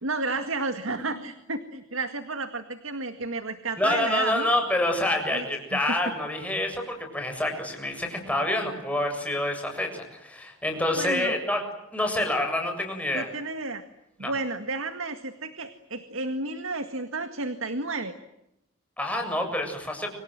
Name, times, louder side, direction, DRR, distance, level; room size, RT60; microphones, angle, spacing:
voice 1, 0.0-4.5 5.3-6.0 11.0-11.4 13.1-13.8 14.2-18.1, right 3 dB, 70° right, 9 dB, 2.0 m, -32 dB
voice 2, 3.8-11.6 11.9-13.3 14.2-14.3 19.0-20.1, left 1 dB, 5° left, 3 dB, 7.5 m, -27 dB
29.5 x 26.0 x 7.8 m, 0.87 s
head